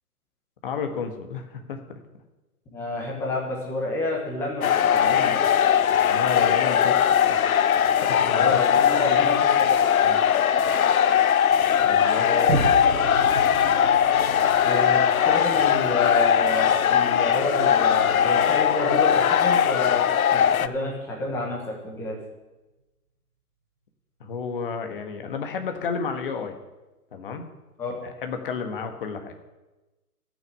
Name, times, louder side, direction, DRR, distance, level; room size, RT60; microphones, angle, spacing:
voice 1, 0.6-2.0 6.1-7.0 7.2-7.5 7.9-8.6 8.9-9.3 10.0-10.2 11.8-12.3 24.2-26.6 27.1-27.4 28.0-29.3, left 5 dB, 35° left, 6 dB, 1.5 m, -32 dB
voice 2, 2.7-5.5 8.3-9.8 12.2-12.7 14.6-20.0 20.3-22.2 27.8-28.1, left 2 dB, 5° left, -2 dB, 1.2 m, -29 dB
sound 1, 4.6-20.7, left 8 dB, 65° left, 0.7 m, -20 dB
Boom, 12.5-19.4 19.9-20.0, right 3 dB, 75° right, 2.0 m, -34 dB
14.5 x 6.4 x 8.3 m, 1.1 s
hypercardioid pair, 155°, 46 cm